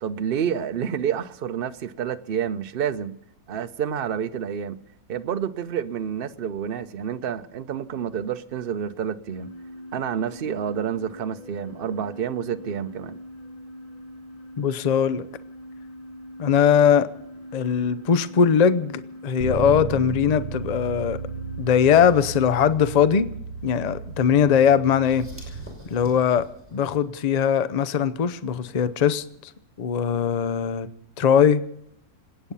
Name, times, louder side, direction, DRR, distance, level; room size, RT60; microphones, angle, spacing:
voice 1, 0.0-3.2 3.5-4.8 5.1-9.5 9.9-13.2, right 8 dB, 45° right, 0.8 m, -29 dB
sound 1, 9.3-22.0, equal, 25° left, 1.6 m, -42 dB
voice 2, 14.6-15.2 16.4-17.1 17.5-21.2 21.6-23.3 23.6-25.3 25.9-26.4 26.7-29.2 29.8-30.9 31.2-31.6, left 7 dB, 45° left, 0.5 m, -20 dB
Bass guitar, 19.4-25.6, right 6 dB, 75° right, 1.3 m, -34 dB
sound 2, 21.7-27.0, right 1 dB, 10° right, 5.3 m, -48 dB
27.5 x 9.2 x 5.4 m
omnidirectional pair, 1.6 m